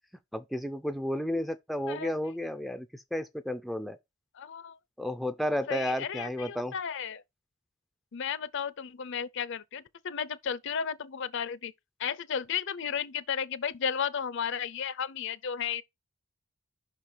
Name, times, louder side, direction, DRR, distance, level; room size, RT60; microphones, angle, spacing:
voice 1, 0.3-2.9 3.1-4.0 5.0-6.7, equal, ahead, 0.4 m, -32 dB
voice 2, 4.4-4.8 5.7-7.2 8.1-11.7 12.0-15.8, left 7 dB, 60° left, 0.5 m, -34 dB
5.7 x 4.4 x 4.9 m
head